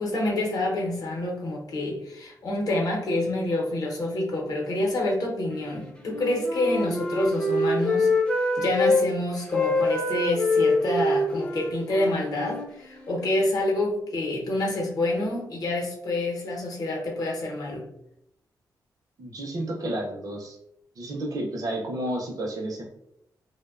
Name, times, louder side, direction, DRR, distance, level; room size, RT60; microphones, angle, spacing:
voice 1, 0.0-8.1 8.6-17.8, left 1 dB, 60° left, -1 dB, 0.7 m, -27 dB
Wind instrument woodwind instrument, 6.0-9.0 9.5-13.3, left 2 dB, 15° left, 0.4 m, -25 dB
voice 2, 19.2-20.6 21.0-22.8, right 1 dB, 55° right, 1 dB, 0.5 m, -31 dB
2.6 x 2.1 x 2.3 m, 0.79 s
wide cardioid pair, 135°, 7 cm